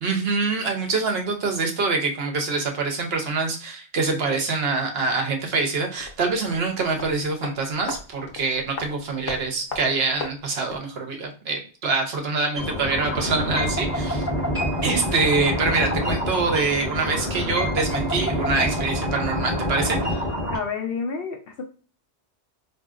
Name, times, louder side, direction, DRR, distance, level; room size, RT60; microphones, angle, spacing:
voice 1, 0.0-14.3 14.8-20.2, right 4 dB, 65° right, 3 dB, 0.9 m, -25 dB
sound 1, 6.0-11.0 11.2-11.3, left 4 dB, 90° left, 1.1 m, -38 dB
sound 2, 12.6-20.6, equal, 10° left, 1.3 m, -26 dB
voice 2, 20.5-21.6, left 5 dB, 60° left, 3 dB, 0.8 m, -29 dB
3.7 x 2.7 x 2.4 m, 0.38 s
omnidirectional pair, 1.2 m